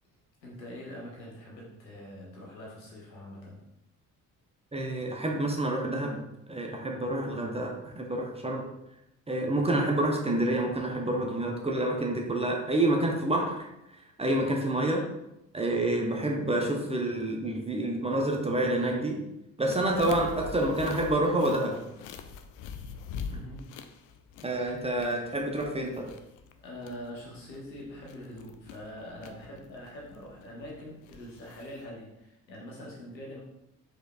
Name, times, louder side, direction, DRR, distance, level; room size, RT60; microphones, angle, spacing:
voice 1, 0.4-3.6 23.3-23.7 26.6-33.4, equal, 80° left, -3 dB, 1.1 m, -44 dB
voice 2, 4.7-6.2 6.5-8.6 9.3-13.7 13.9-15.1 15.5-19.3 19.6-21.8 24.4-26.1, right 1 dB, 10° right, 1 dB, 0.6 m, -28 dB
sound 1, 19.7-31.9, left 6 dB, 40° left, 0.4 m, -44 dB
4.8 x 4.2 x 2.3 m, 0.86 s
figure-of-eight pair, 45°, 50 cm